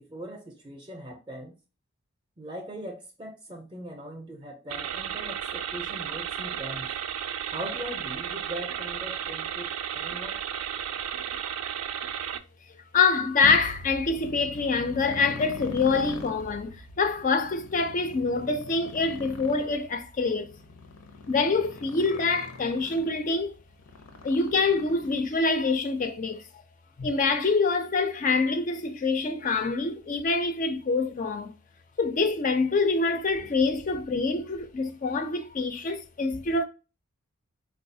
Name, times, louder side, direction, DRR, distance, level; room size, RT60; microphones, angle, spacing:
voice 1, 0.0-1.6 2.4-6.9 7.5-10.4, equal, 20° right, 0.5 m, -40 dB
sound 1, 4.7-12.4, right 9 dB, 80° right, 0.4 m, -34 dB
voice 2, 12.9-20.5 21.3-23.5 24.2-26.4 27.0-31.5 32.0-36.6, left 4 dB, 35° left, 0.4 m, -25 dB
Motorcycle, 13.4-25.5, left 3 dB, 85° left, 0.6 m, -43 dB
3.9 x 2.3 x 2.6 m
head